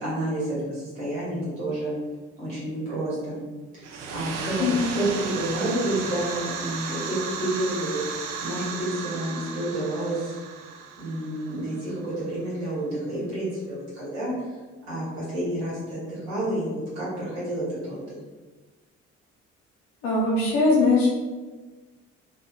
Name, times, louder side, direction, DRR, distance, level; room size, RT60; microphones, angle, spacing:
voice 1, 0.0-1.9 2.4-3.4 4.1-10.3 11.0-14.3 14.9-18.0, right 1 dB, 85° right, -8 dB, 1.4 m, -29 dB
sound 1, 3.8-12.3, right 5 dB, 65° right, 0.5 m, -35 dB
voice 2, 4.6-4.9 20.0-21.1, left 3 dB, 85° left, -4 dB, 0.8 m, -21 dB
2.8 x 2.3 x 3.5 m, 1.3 s
figure-of-eight pair, 45°, 36 cm